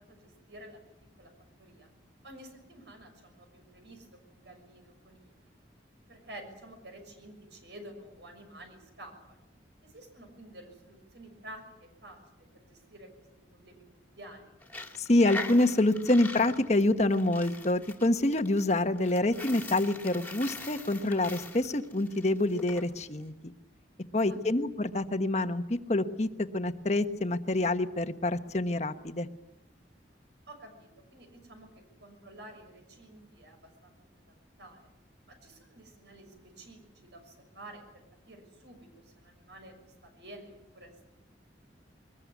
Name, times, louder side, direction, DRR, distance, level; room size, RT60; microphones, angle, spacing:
voice 1, 0.1-0.9 1.2-1.3 1.6-1.9 2.2-5.3 6.1-9.4 9.8-13.3 13.5-13.8 14.1-14.6 20.9-21.0 24.2-24.5 30.5-31.7 32.0-34.8 35.3-36.8 37.1-40.9, right 1 dB, 70° right, 4 dB, 6.3 m, -51 dB
Coin (dropping), 14.6-22.8, left 2 dB, 10° left, 2.2 m, -42 dB
voice 2, 15.0-23.5 24.1-29.3, left 2 dB, 35° left, 9 dB, 1.2 m, -27 dB
23.0 x 20.5 x 9.5 m, 0.92 s
head